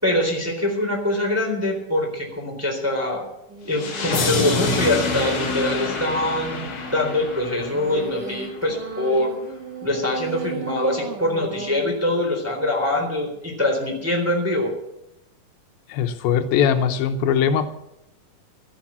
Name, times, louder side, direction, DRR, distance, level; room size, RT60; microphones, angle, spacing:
voice 1, 0.0-3.2 3.6-6.7 6.9-9.3 9.8-14.7, left 1 dB, 5° right, 0 dB, 3.1 m, -23 dB
sound 1, 3.5-5.3 7.5-12.6, right 5 dB, 70° right, 1.0 m, -36 dB
sound 2, 3.7-8.7, left 3 dB, 50° left, 3.6 m, -27 dB
voice 2, 15.9-17.7, left 8 dB, 85° left, 8 dB, 2.8 m, -20 dB
13.0 x 11.5 x 7.3 m, 0.83 s
omnidirectional pair, 4.2 m